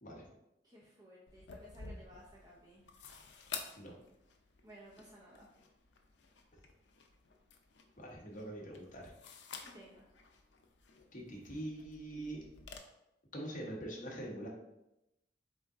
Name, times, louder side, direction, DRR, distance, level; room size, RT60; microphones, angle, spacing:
voice 1, 0.6-2.8 4.6-5.5 9.6-10.1, right 1 dB, 20° right, -5 dB, 0.6 m, -57 dB
sound 1, 1.3-12.8, left 5 dB, 80° left, 0.5 m, -52 dB
voice 2, 8.0-9.1 11.1-12.4 13.3-14.5, right 1 dB, 50° left, -2 dB, 1.1 m, -43 dB
3.9 x 3.7 x 3.6 m, 0.88 s
head